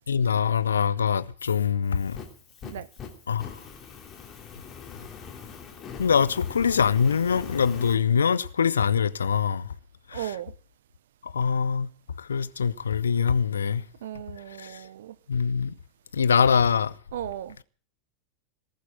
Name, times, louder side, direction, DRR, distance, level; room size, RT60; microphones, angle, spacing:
voice 1, 0.1-2.2 3.3-3.5 6.0-9.6 10.1-10.3 11.3-11.9 12.2-13.8 14.6-14.8 15.3-15.7 16.1-16.9, left 6 dB, 70° left, 0.7 m, -23 dB
Fire, 1.8-8.0, left 6 dB, 25° left, 3.1 m, -42 dB
voice 2, 10.1-10.5 14.0-15.1 17.1-17.6, right 12 dB, 60° right, 1.0 m, -36 dB
18.5 x 8.3 x 8.9 m
figure-of-eight pair, 90°, 0 cm